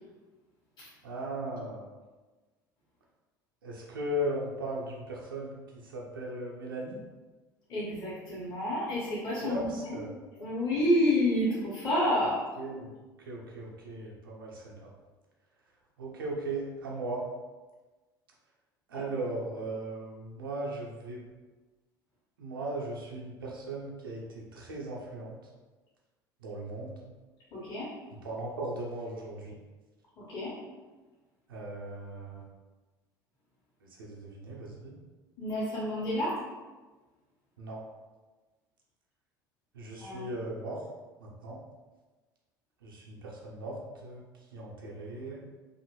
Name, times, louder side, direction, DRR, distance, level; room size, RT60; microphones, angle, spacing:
voice 1, 1.0-1.9 3.6-7.0 9.4-10.1 12.6-12.9 13.2-14.9 16.0-17.2 18.9-21.2 22.4-25.4 26.4-27.0 28.2-29.6 31.5-32.5 33.8-35.0 37.6-37.8 39.7-40.8 41.2-41.6 42.8-44.2 44.5-45.4, right 1 dB, 80° right, -3 dB, 0.5 m, -37 dB
voice 2, 7.7-10.0 10.4-12.4 27.5-27.9 30.2-30.5 35.4-36.4 40.0-40.3, left 1 dB, 40° left, -9 dB, 1.0 m, -29 dB
2.6 x 2.4 x 2.9 m, 1.3 s
figure-of-eight pair, 65°, 11 cm